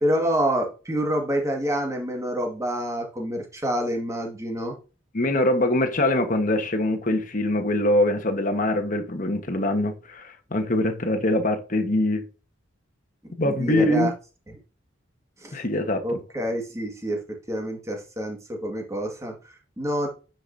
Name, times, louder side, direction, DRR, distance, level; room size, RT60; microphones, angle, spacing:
voice 1, 0.0-4.8 13.4-14.1 15.4-15.6 16.0-20.1, equal, 15° right, 2.0 m, -27 dB
voice 2, 5.1-12.3 13.4-14.1 15.5-16.2, left 1 dB, 45° left, 1.4 m, -23 dB
9.8 x 5.8 x 2.8 m
head